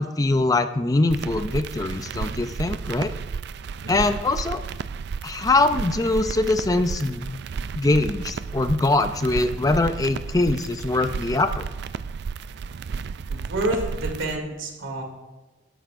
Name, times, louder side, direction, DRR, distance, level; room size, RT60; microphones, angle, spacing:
voice 1, 0.0-3.1 3.9-4.6 5.2-7.4 7.7-11.7, left 2 dB, 20° left, 10 dB, 0.4 m, -22 dB
sound 1, 1.1-14.4, right 5 dB, 55° right, 0.3 m, -33 dB
voice 2, 13.2-15.0, right 1 dB, 80° right, 1 dB, 2.7 m, -29 dB
21.0 x 10.0 x 2.6 m, 1.2 s
head